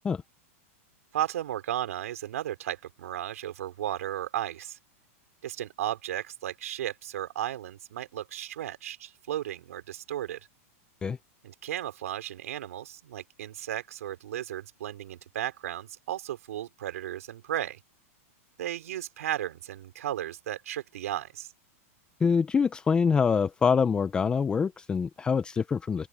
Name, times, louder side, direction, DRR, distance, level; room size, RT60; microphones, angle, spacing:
voice 1, 1.1-4.8 5.4-10.4 11.4-17.8 18.6-21.5, right 12 dB, 80° right, 3.8 m, -34 dB
voice 2, 22.2-26.1, left 6 dB, 10° left, 0.4 m, -25 dB
open air
supercardioid pair, 150°, 8 cm